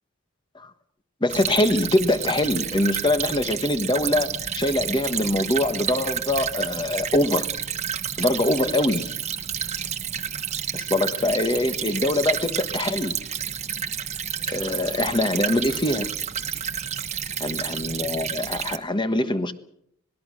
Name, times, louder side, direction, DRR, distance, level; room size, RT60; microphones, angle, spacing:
voice 1, 1.2-7.5 8.2-9.1 10.7-13.2 14.5-16.2 17.4-19.5, left 1 dB, 20° left, 1.3 m, -23 dB
Stream / Trickle dribble, 1.3-18.8, right 8 dB, 30° right, 1.1 m, -30 dB
26.0 x 20.0 x 6.3 m
head